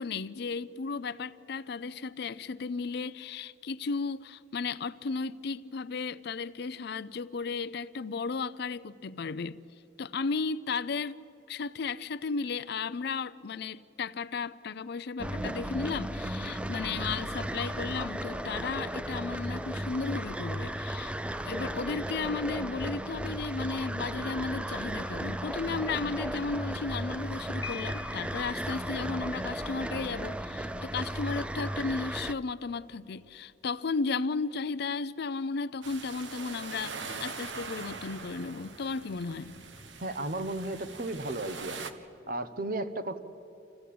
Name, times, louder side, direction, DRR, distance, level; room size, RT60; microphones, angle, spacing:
voice 1, 0.0-9.6 10.0-11.2 11.5-21.1 21.4-39.6, left 4 dB, 65° left, 0.5 m, -34 dB
sound 1, 15.2-32.3, right 1 dB, 5° right, 0.4 m, -35 dB
Piano, 27.6-28.6, left 8 dB, 20° left, 1.3 m, -42 dB
sound 2, 35.8-41.9, right 4 dB, 85° right, 1.1 m, -42 dB
voice 2, 40.0-41.8 42.3-43.2, right 2 dB, 50° right, 1.0 m, -34 dB
26.5 x 15.5 x 8.5 m
head